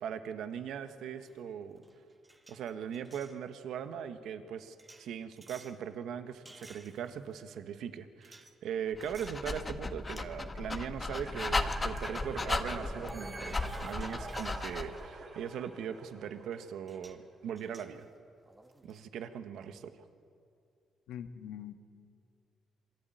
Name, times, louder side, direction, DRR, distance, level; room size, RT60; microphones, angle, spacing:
voice 1, 0.0-1.8 2.5-18.1 18.8-19.9, right 8 dB, 80° right, 9 dB, 1.5 m, -40 dB
sound 1, 1.3-1.5 1.8-3.4 4.8-5.8 6.5-7.3 8.2-8.5 9.0-9.5 9.9-10.1 11.6-11.7 13.1-15.2 16.5-16.6 16.9-17.2 17.6-19.0, right 2 dB, 20° right, 2.2 m, -55 dB
Dog, 8.9-15.0, left 3 dB, 25° left, 1.6 m, -36 dB
sound 2, 11.1-16.8, right 3 dB, 55° right, 7.5 m, -46 dB
voice 2, 21.1-21.7, left 9 dB, 85° left, 7 dB, 1.7 m, -42 dB
27.0 x 21.0 x 9.3 m, 2.3 s
cardioid pair, 90°, 0 cm